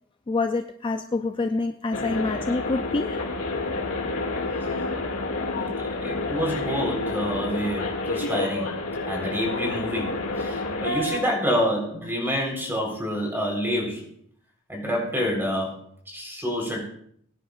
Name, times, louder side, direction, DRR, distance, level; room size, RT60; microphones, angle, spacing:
voice 1, 0.3-3.2, left 3 dB, 25° left, 7 dB, 0.4 m, -27 dB
sound 1, 1.9-11.2, left 2 dB, 80° left, 2.2 m, -29 dB
voice 2, 5.3-8.8 9.1-14.1 14.7-15.8 16.1-16.8, equal, 10° right, 0 dB, 4.0 m, -28 dB
21.5 x 10.0 x 2.5 m, 0.67 s
head